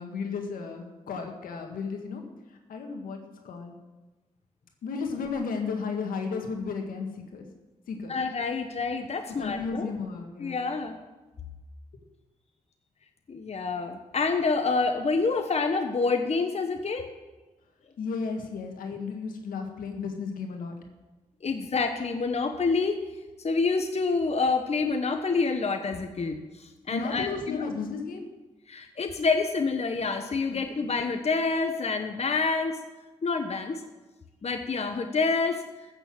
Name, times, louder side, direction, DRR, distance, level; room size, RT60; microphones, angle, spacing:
voice 1, 0.0-2.2 2.5-3.8 4.8-7.5 7.9-8.2 9.4-10.6 18.0-20.7 26.9-28.3 30.5-30.9, left 5 dB, 85° left, 4 dB, 1.9 m, -34 dB
voice 2, 8.1-9.9 10.4-11.0 13.3-17.1 21.4-23.0 23.4-27.6 28.7-32.8 33.2-33.8 34.4-35.6, left 4 dB, 50° left, 6 dB, 1.2 m, -27 dB
14.5 x 6.9 x 7.5 m, 1.2 s
supercardioid pair, 50°, 14 cm